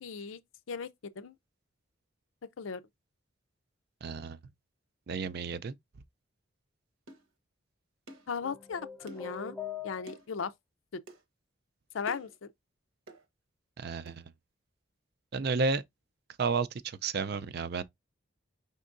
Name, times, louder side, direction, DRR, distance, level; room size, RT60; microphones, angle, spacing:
voice 1, 0.0-0.4 0.7-0.9 1.2-1.3 2.6-2.8 8.3-9.6 9.8-10.5 11.9-12.5, left 6 dB, 85° left, 0.5 m, -36 dB
voice 2, 4.0-4.4 5.1-5.8 13.8-14.2 15.3-15.8 16.4-17.8, right 4 dB, 50° right, 0.4 m, -32 dB
sound 1, 7.1-7.3 8.1-8.3 9.1-9.4 10.1-10.3 11.1-11.2 12.1-12.4 13.1-13.2 14.1-14.2, right 2 dB, 90° right, 1.0 m, -49 dB
sound 2, 8.4-10.5, left 7 dB, 10° left, 0.6 m, -42 dB
5.3 x 3.6 x 2.5 m
head